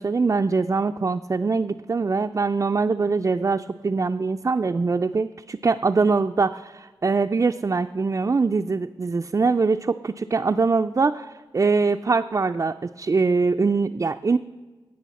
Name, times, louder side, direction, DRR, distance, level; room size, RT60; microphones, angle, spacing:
voice 1, 0.0-11.3 11.5-14.4, right 4 dB, 35° right, 6 dB, 0.4 m, -23 dB
17.0 x 6.3 x 4.1 m, 1.3 s
cardioid pair, 45°, 9 cm